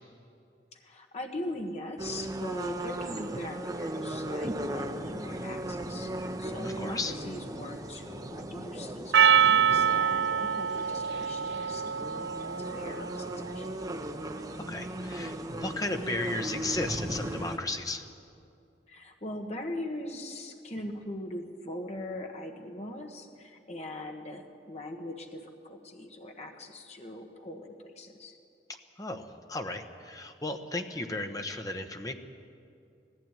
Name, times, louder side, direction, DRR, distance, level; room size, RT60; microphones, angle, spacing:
voice 1, 0.7-13.6 18.9-28.4, left 1 dB, 40° left, 3 dB, 1.5 m, -41 dB
sound 1, 2.0-17.6, right 1 dB, 20° right, 0.8 m, -37 dB
voice 2, 6.6-7.1 14.5-18.0 29.0-32.1, left 2 dB, 20° left, 5 dB, 1.1 m, -35 dB
Percussion, 9.1-13.7, right 8 dB, 70° right, 0.4 m, -26 dB
19.0 x 15.5 x 9.1 m, 2.5 s
head